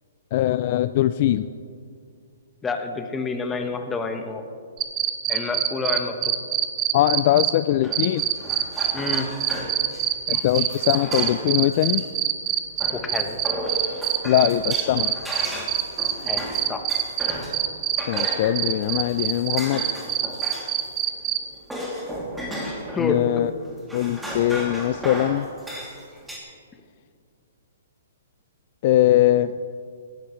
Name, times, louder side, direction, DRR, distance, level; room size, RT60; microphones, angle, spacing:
voice 1, 0.3-1.5 6.9-8.3 10.3-12.0 14.2-15.2 18.1-19.8 23.0-23.5 23.9-25.5 28.8-29.5, left 13 dB, 45° left, 13 dB, 0.3 m, -21 dB
voice 2, 2.6-4.4 5.3-6.3 8.9-9.3 12.9-13.4 16.2-16.8 22.9-23.2, left 4 dB, 15° left, 5 dB, 1.2 m, -28 dB
sound 1, 4.8-7.5 7.9-21.4, right 12 dB, 25° right, 0.9 m, -24 dB
sound 2, 7.8-12.0 12.8-17.7 18.0-20.9 21.1-23.1 23.6-26.4, equal, 5° right, 2.7 m, -34 dB
19.0 x 13.0 x 3.2 m, 2.2 s
hypercardioid pair, 140°, 0 cm